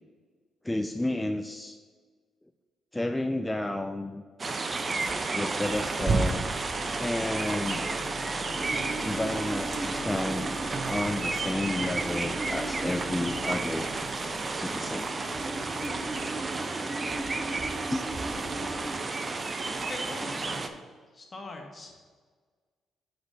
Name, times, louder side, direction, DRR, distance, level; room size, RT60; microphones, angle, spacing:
voice 1, 0.6-1.8 2.9-4.2 5.3-6.4 7.0-7.9 9.0-10.6 10.9-13.9 14.5-15.1 17.9-18.1, left 1 dB, 15° left, 7 dB, 0.5 m, -31 dB
sound 1, 4.4-20.7, right 3 dB, 40° right, 0.8 m, -31 dB
sound 2, 5.8-17.7, left 6 dB, 70° left, 0.8 m, -48 dB
sound 3, 8.5-20.4, right 1 dB, 15° right, 1.4 m, -39 dB
voice 2, 19.6-20.7 21.1-22.0, left 2 dB, 35° left, 2 dB, 1.7 m, -42 dB
6.0 x 5.1 x 6.4 m, 1.5 s
supercardioid pair, 50°, 0 cm